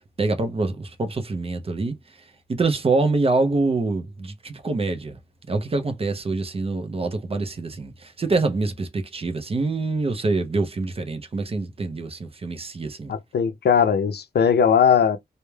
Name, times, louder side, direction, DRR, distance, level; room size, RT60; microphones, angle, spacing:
voice 1, 0.2-2.0 2.5-5.2 5.5-13.1, right 3 dB, 35° right, 0.4 m, -25 dB
voice 2, 13.1-15.2, left 7 dB, 75° left, 0.4 m, -19 dB
2.2 x 2.0 x 3.1 m
wide cardioid pair, 150°, 17 cm